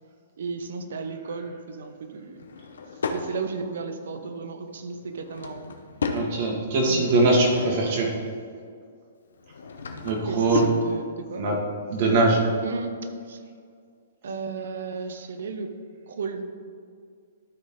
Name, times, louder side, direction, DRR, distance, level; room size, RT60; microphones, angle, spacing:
voice 1, 0.4-2.5 3.1-5.7 6.9-7.2 10.3-11.4 12.6-12.9 13.3-13.4 14.2-15.7 16.1-16.4, right 4 dB, 70° right, 7 dB, 0.8 m, -34 dB
Drawer open or close / Wood, 2.3-3.3 5.0-6.3 6.8-8.0 9.3-10.8, left 4 dB, 80° left, 0.8 m, -33 dB
voice 2, 6.1-8.1 10.0-10.7 11.4-11.6 11.9-12.4, right 2 dB, 50° right, -1 dB, 1.9 m, -21 dB
12.5 x 4.3 x 3.8 m, 2.2 s
hypercardioid pair, 130°, 0 cm